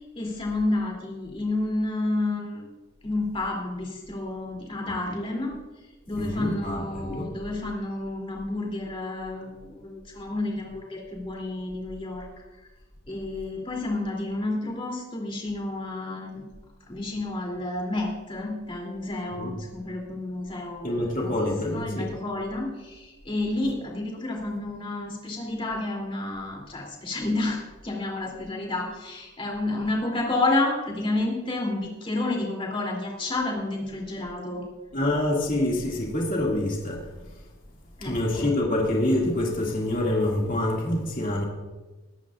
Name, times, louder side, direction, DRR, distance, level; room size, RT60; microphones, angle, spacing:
voice 1, 0.1-2.7 3.0-5.5 6.1-12.3 13.1-16.4 16.9-20.9 21.2-21.3 21.7-27.6 27.8-34.6 38.0-38.5, left 2 dB, 25° left, -1 dB, 3.0 m, -30 dB
voice 2, 6.2-7.3 19.3-19.5 20.8-22.2 34.9-37.4 38.0-41.4, left 1 dB, 40° left, -2 dB, 2.3 m, -26 dB
22.0 x 11.5 x 2.5 m, 1.2 s
head